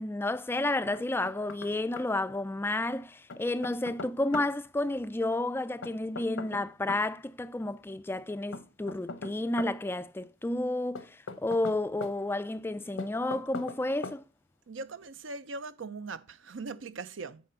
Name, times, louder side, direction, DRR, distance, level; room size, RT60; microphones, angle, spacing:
voice 1, 0.0-14.2, left 2 dB, 10° left, 0.3 m, -31 dB
Knock, 0.9-1.7 2.0-2.1 3.3-4.5 5.8-7.1 8.5-9.8 11.0-12.2 13.0-13.8 14.0-14.2, left 3 dB, 85° left, 0.9 m, -40 dB
voice 2, 14.7-17.4, right 3 dB, 75° right, 0.6 m, -40 dB
9.6 x 4.3 x 5.5 m
head